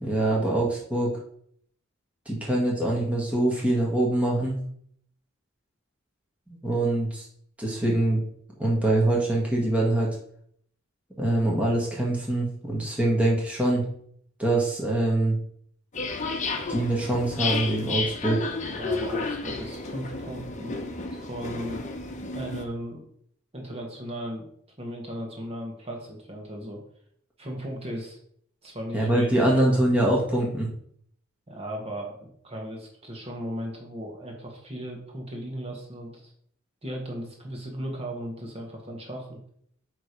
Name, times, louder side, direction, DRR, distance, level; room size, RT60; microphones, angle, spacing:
voice 1, 0.0-1.1 2.2-4.6 6.5-7.3 7.6-8.2 8.6-10.1 11.2-13.8 14.4-15.4 16.7-18.4 28.9-30.7, right 1 dB, 5° right, -4 dB, 1.5 m, -24 dB
sound 1, 15.9-22.6, left 3 dB, 35° left, 0.9 m, -32 dB
voice 2, 18.7-20.8 21.2-21.8 22.3-23.0 23.5-24.5 24.8-26.8 27.4-28.2 28.6-29.3 29.5-29.7 31.5-36.3 36.8-39.4, equal, 30° right, 0 dB, 1.5 m, -36 dB
9.0 x 3.2 x 5.2 m, 0.64 s
head